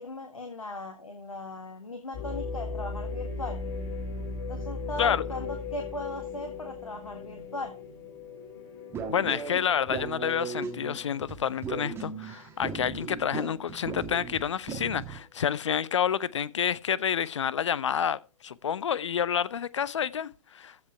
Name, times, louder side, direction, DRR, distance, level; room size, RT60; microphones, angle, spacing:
voice 1, 0.0-3.6 4.5-7.7, left 2 dB, 75° left, 1.9 m, -38 dB
sound 1, 2.1-12.1 12.6-12.7 13.3-13.7, left 4 dB, 35° left, 4.4 m, -38 dB
sound 2, 8.9-15.2, right 5 dB, 15° right, 1.6 m, -37 dB
voice 2, 9.1-20.9, left 8 dB, 55° left, 0.5 m, -29 dB
15.0 x 5.4 x 4.6 m
figure-of-eight pair, 115°, 18 cm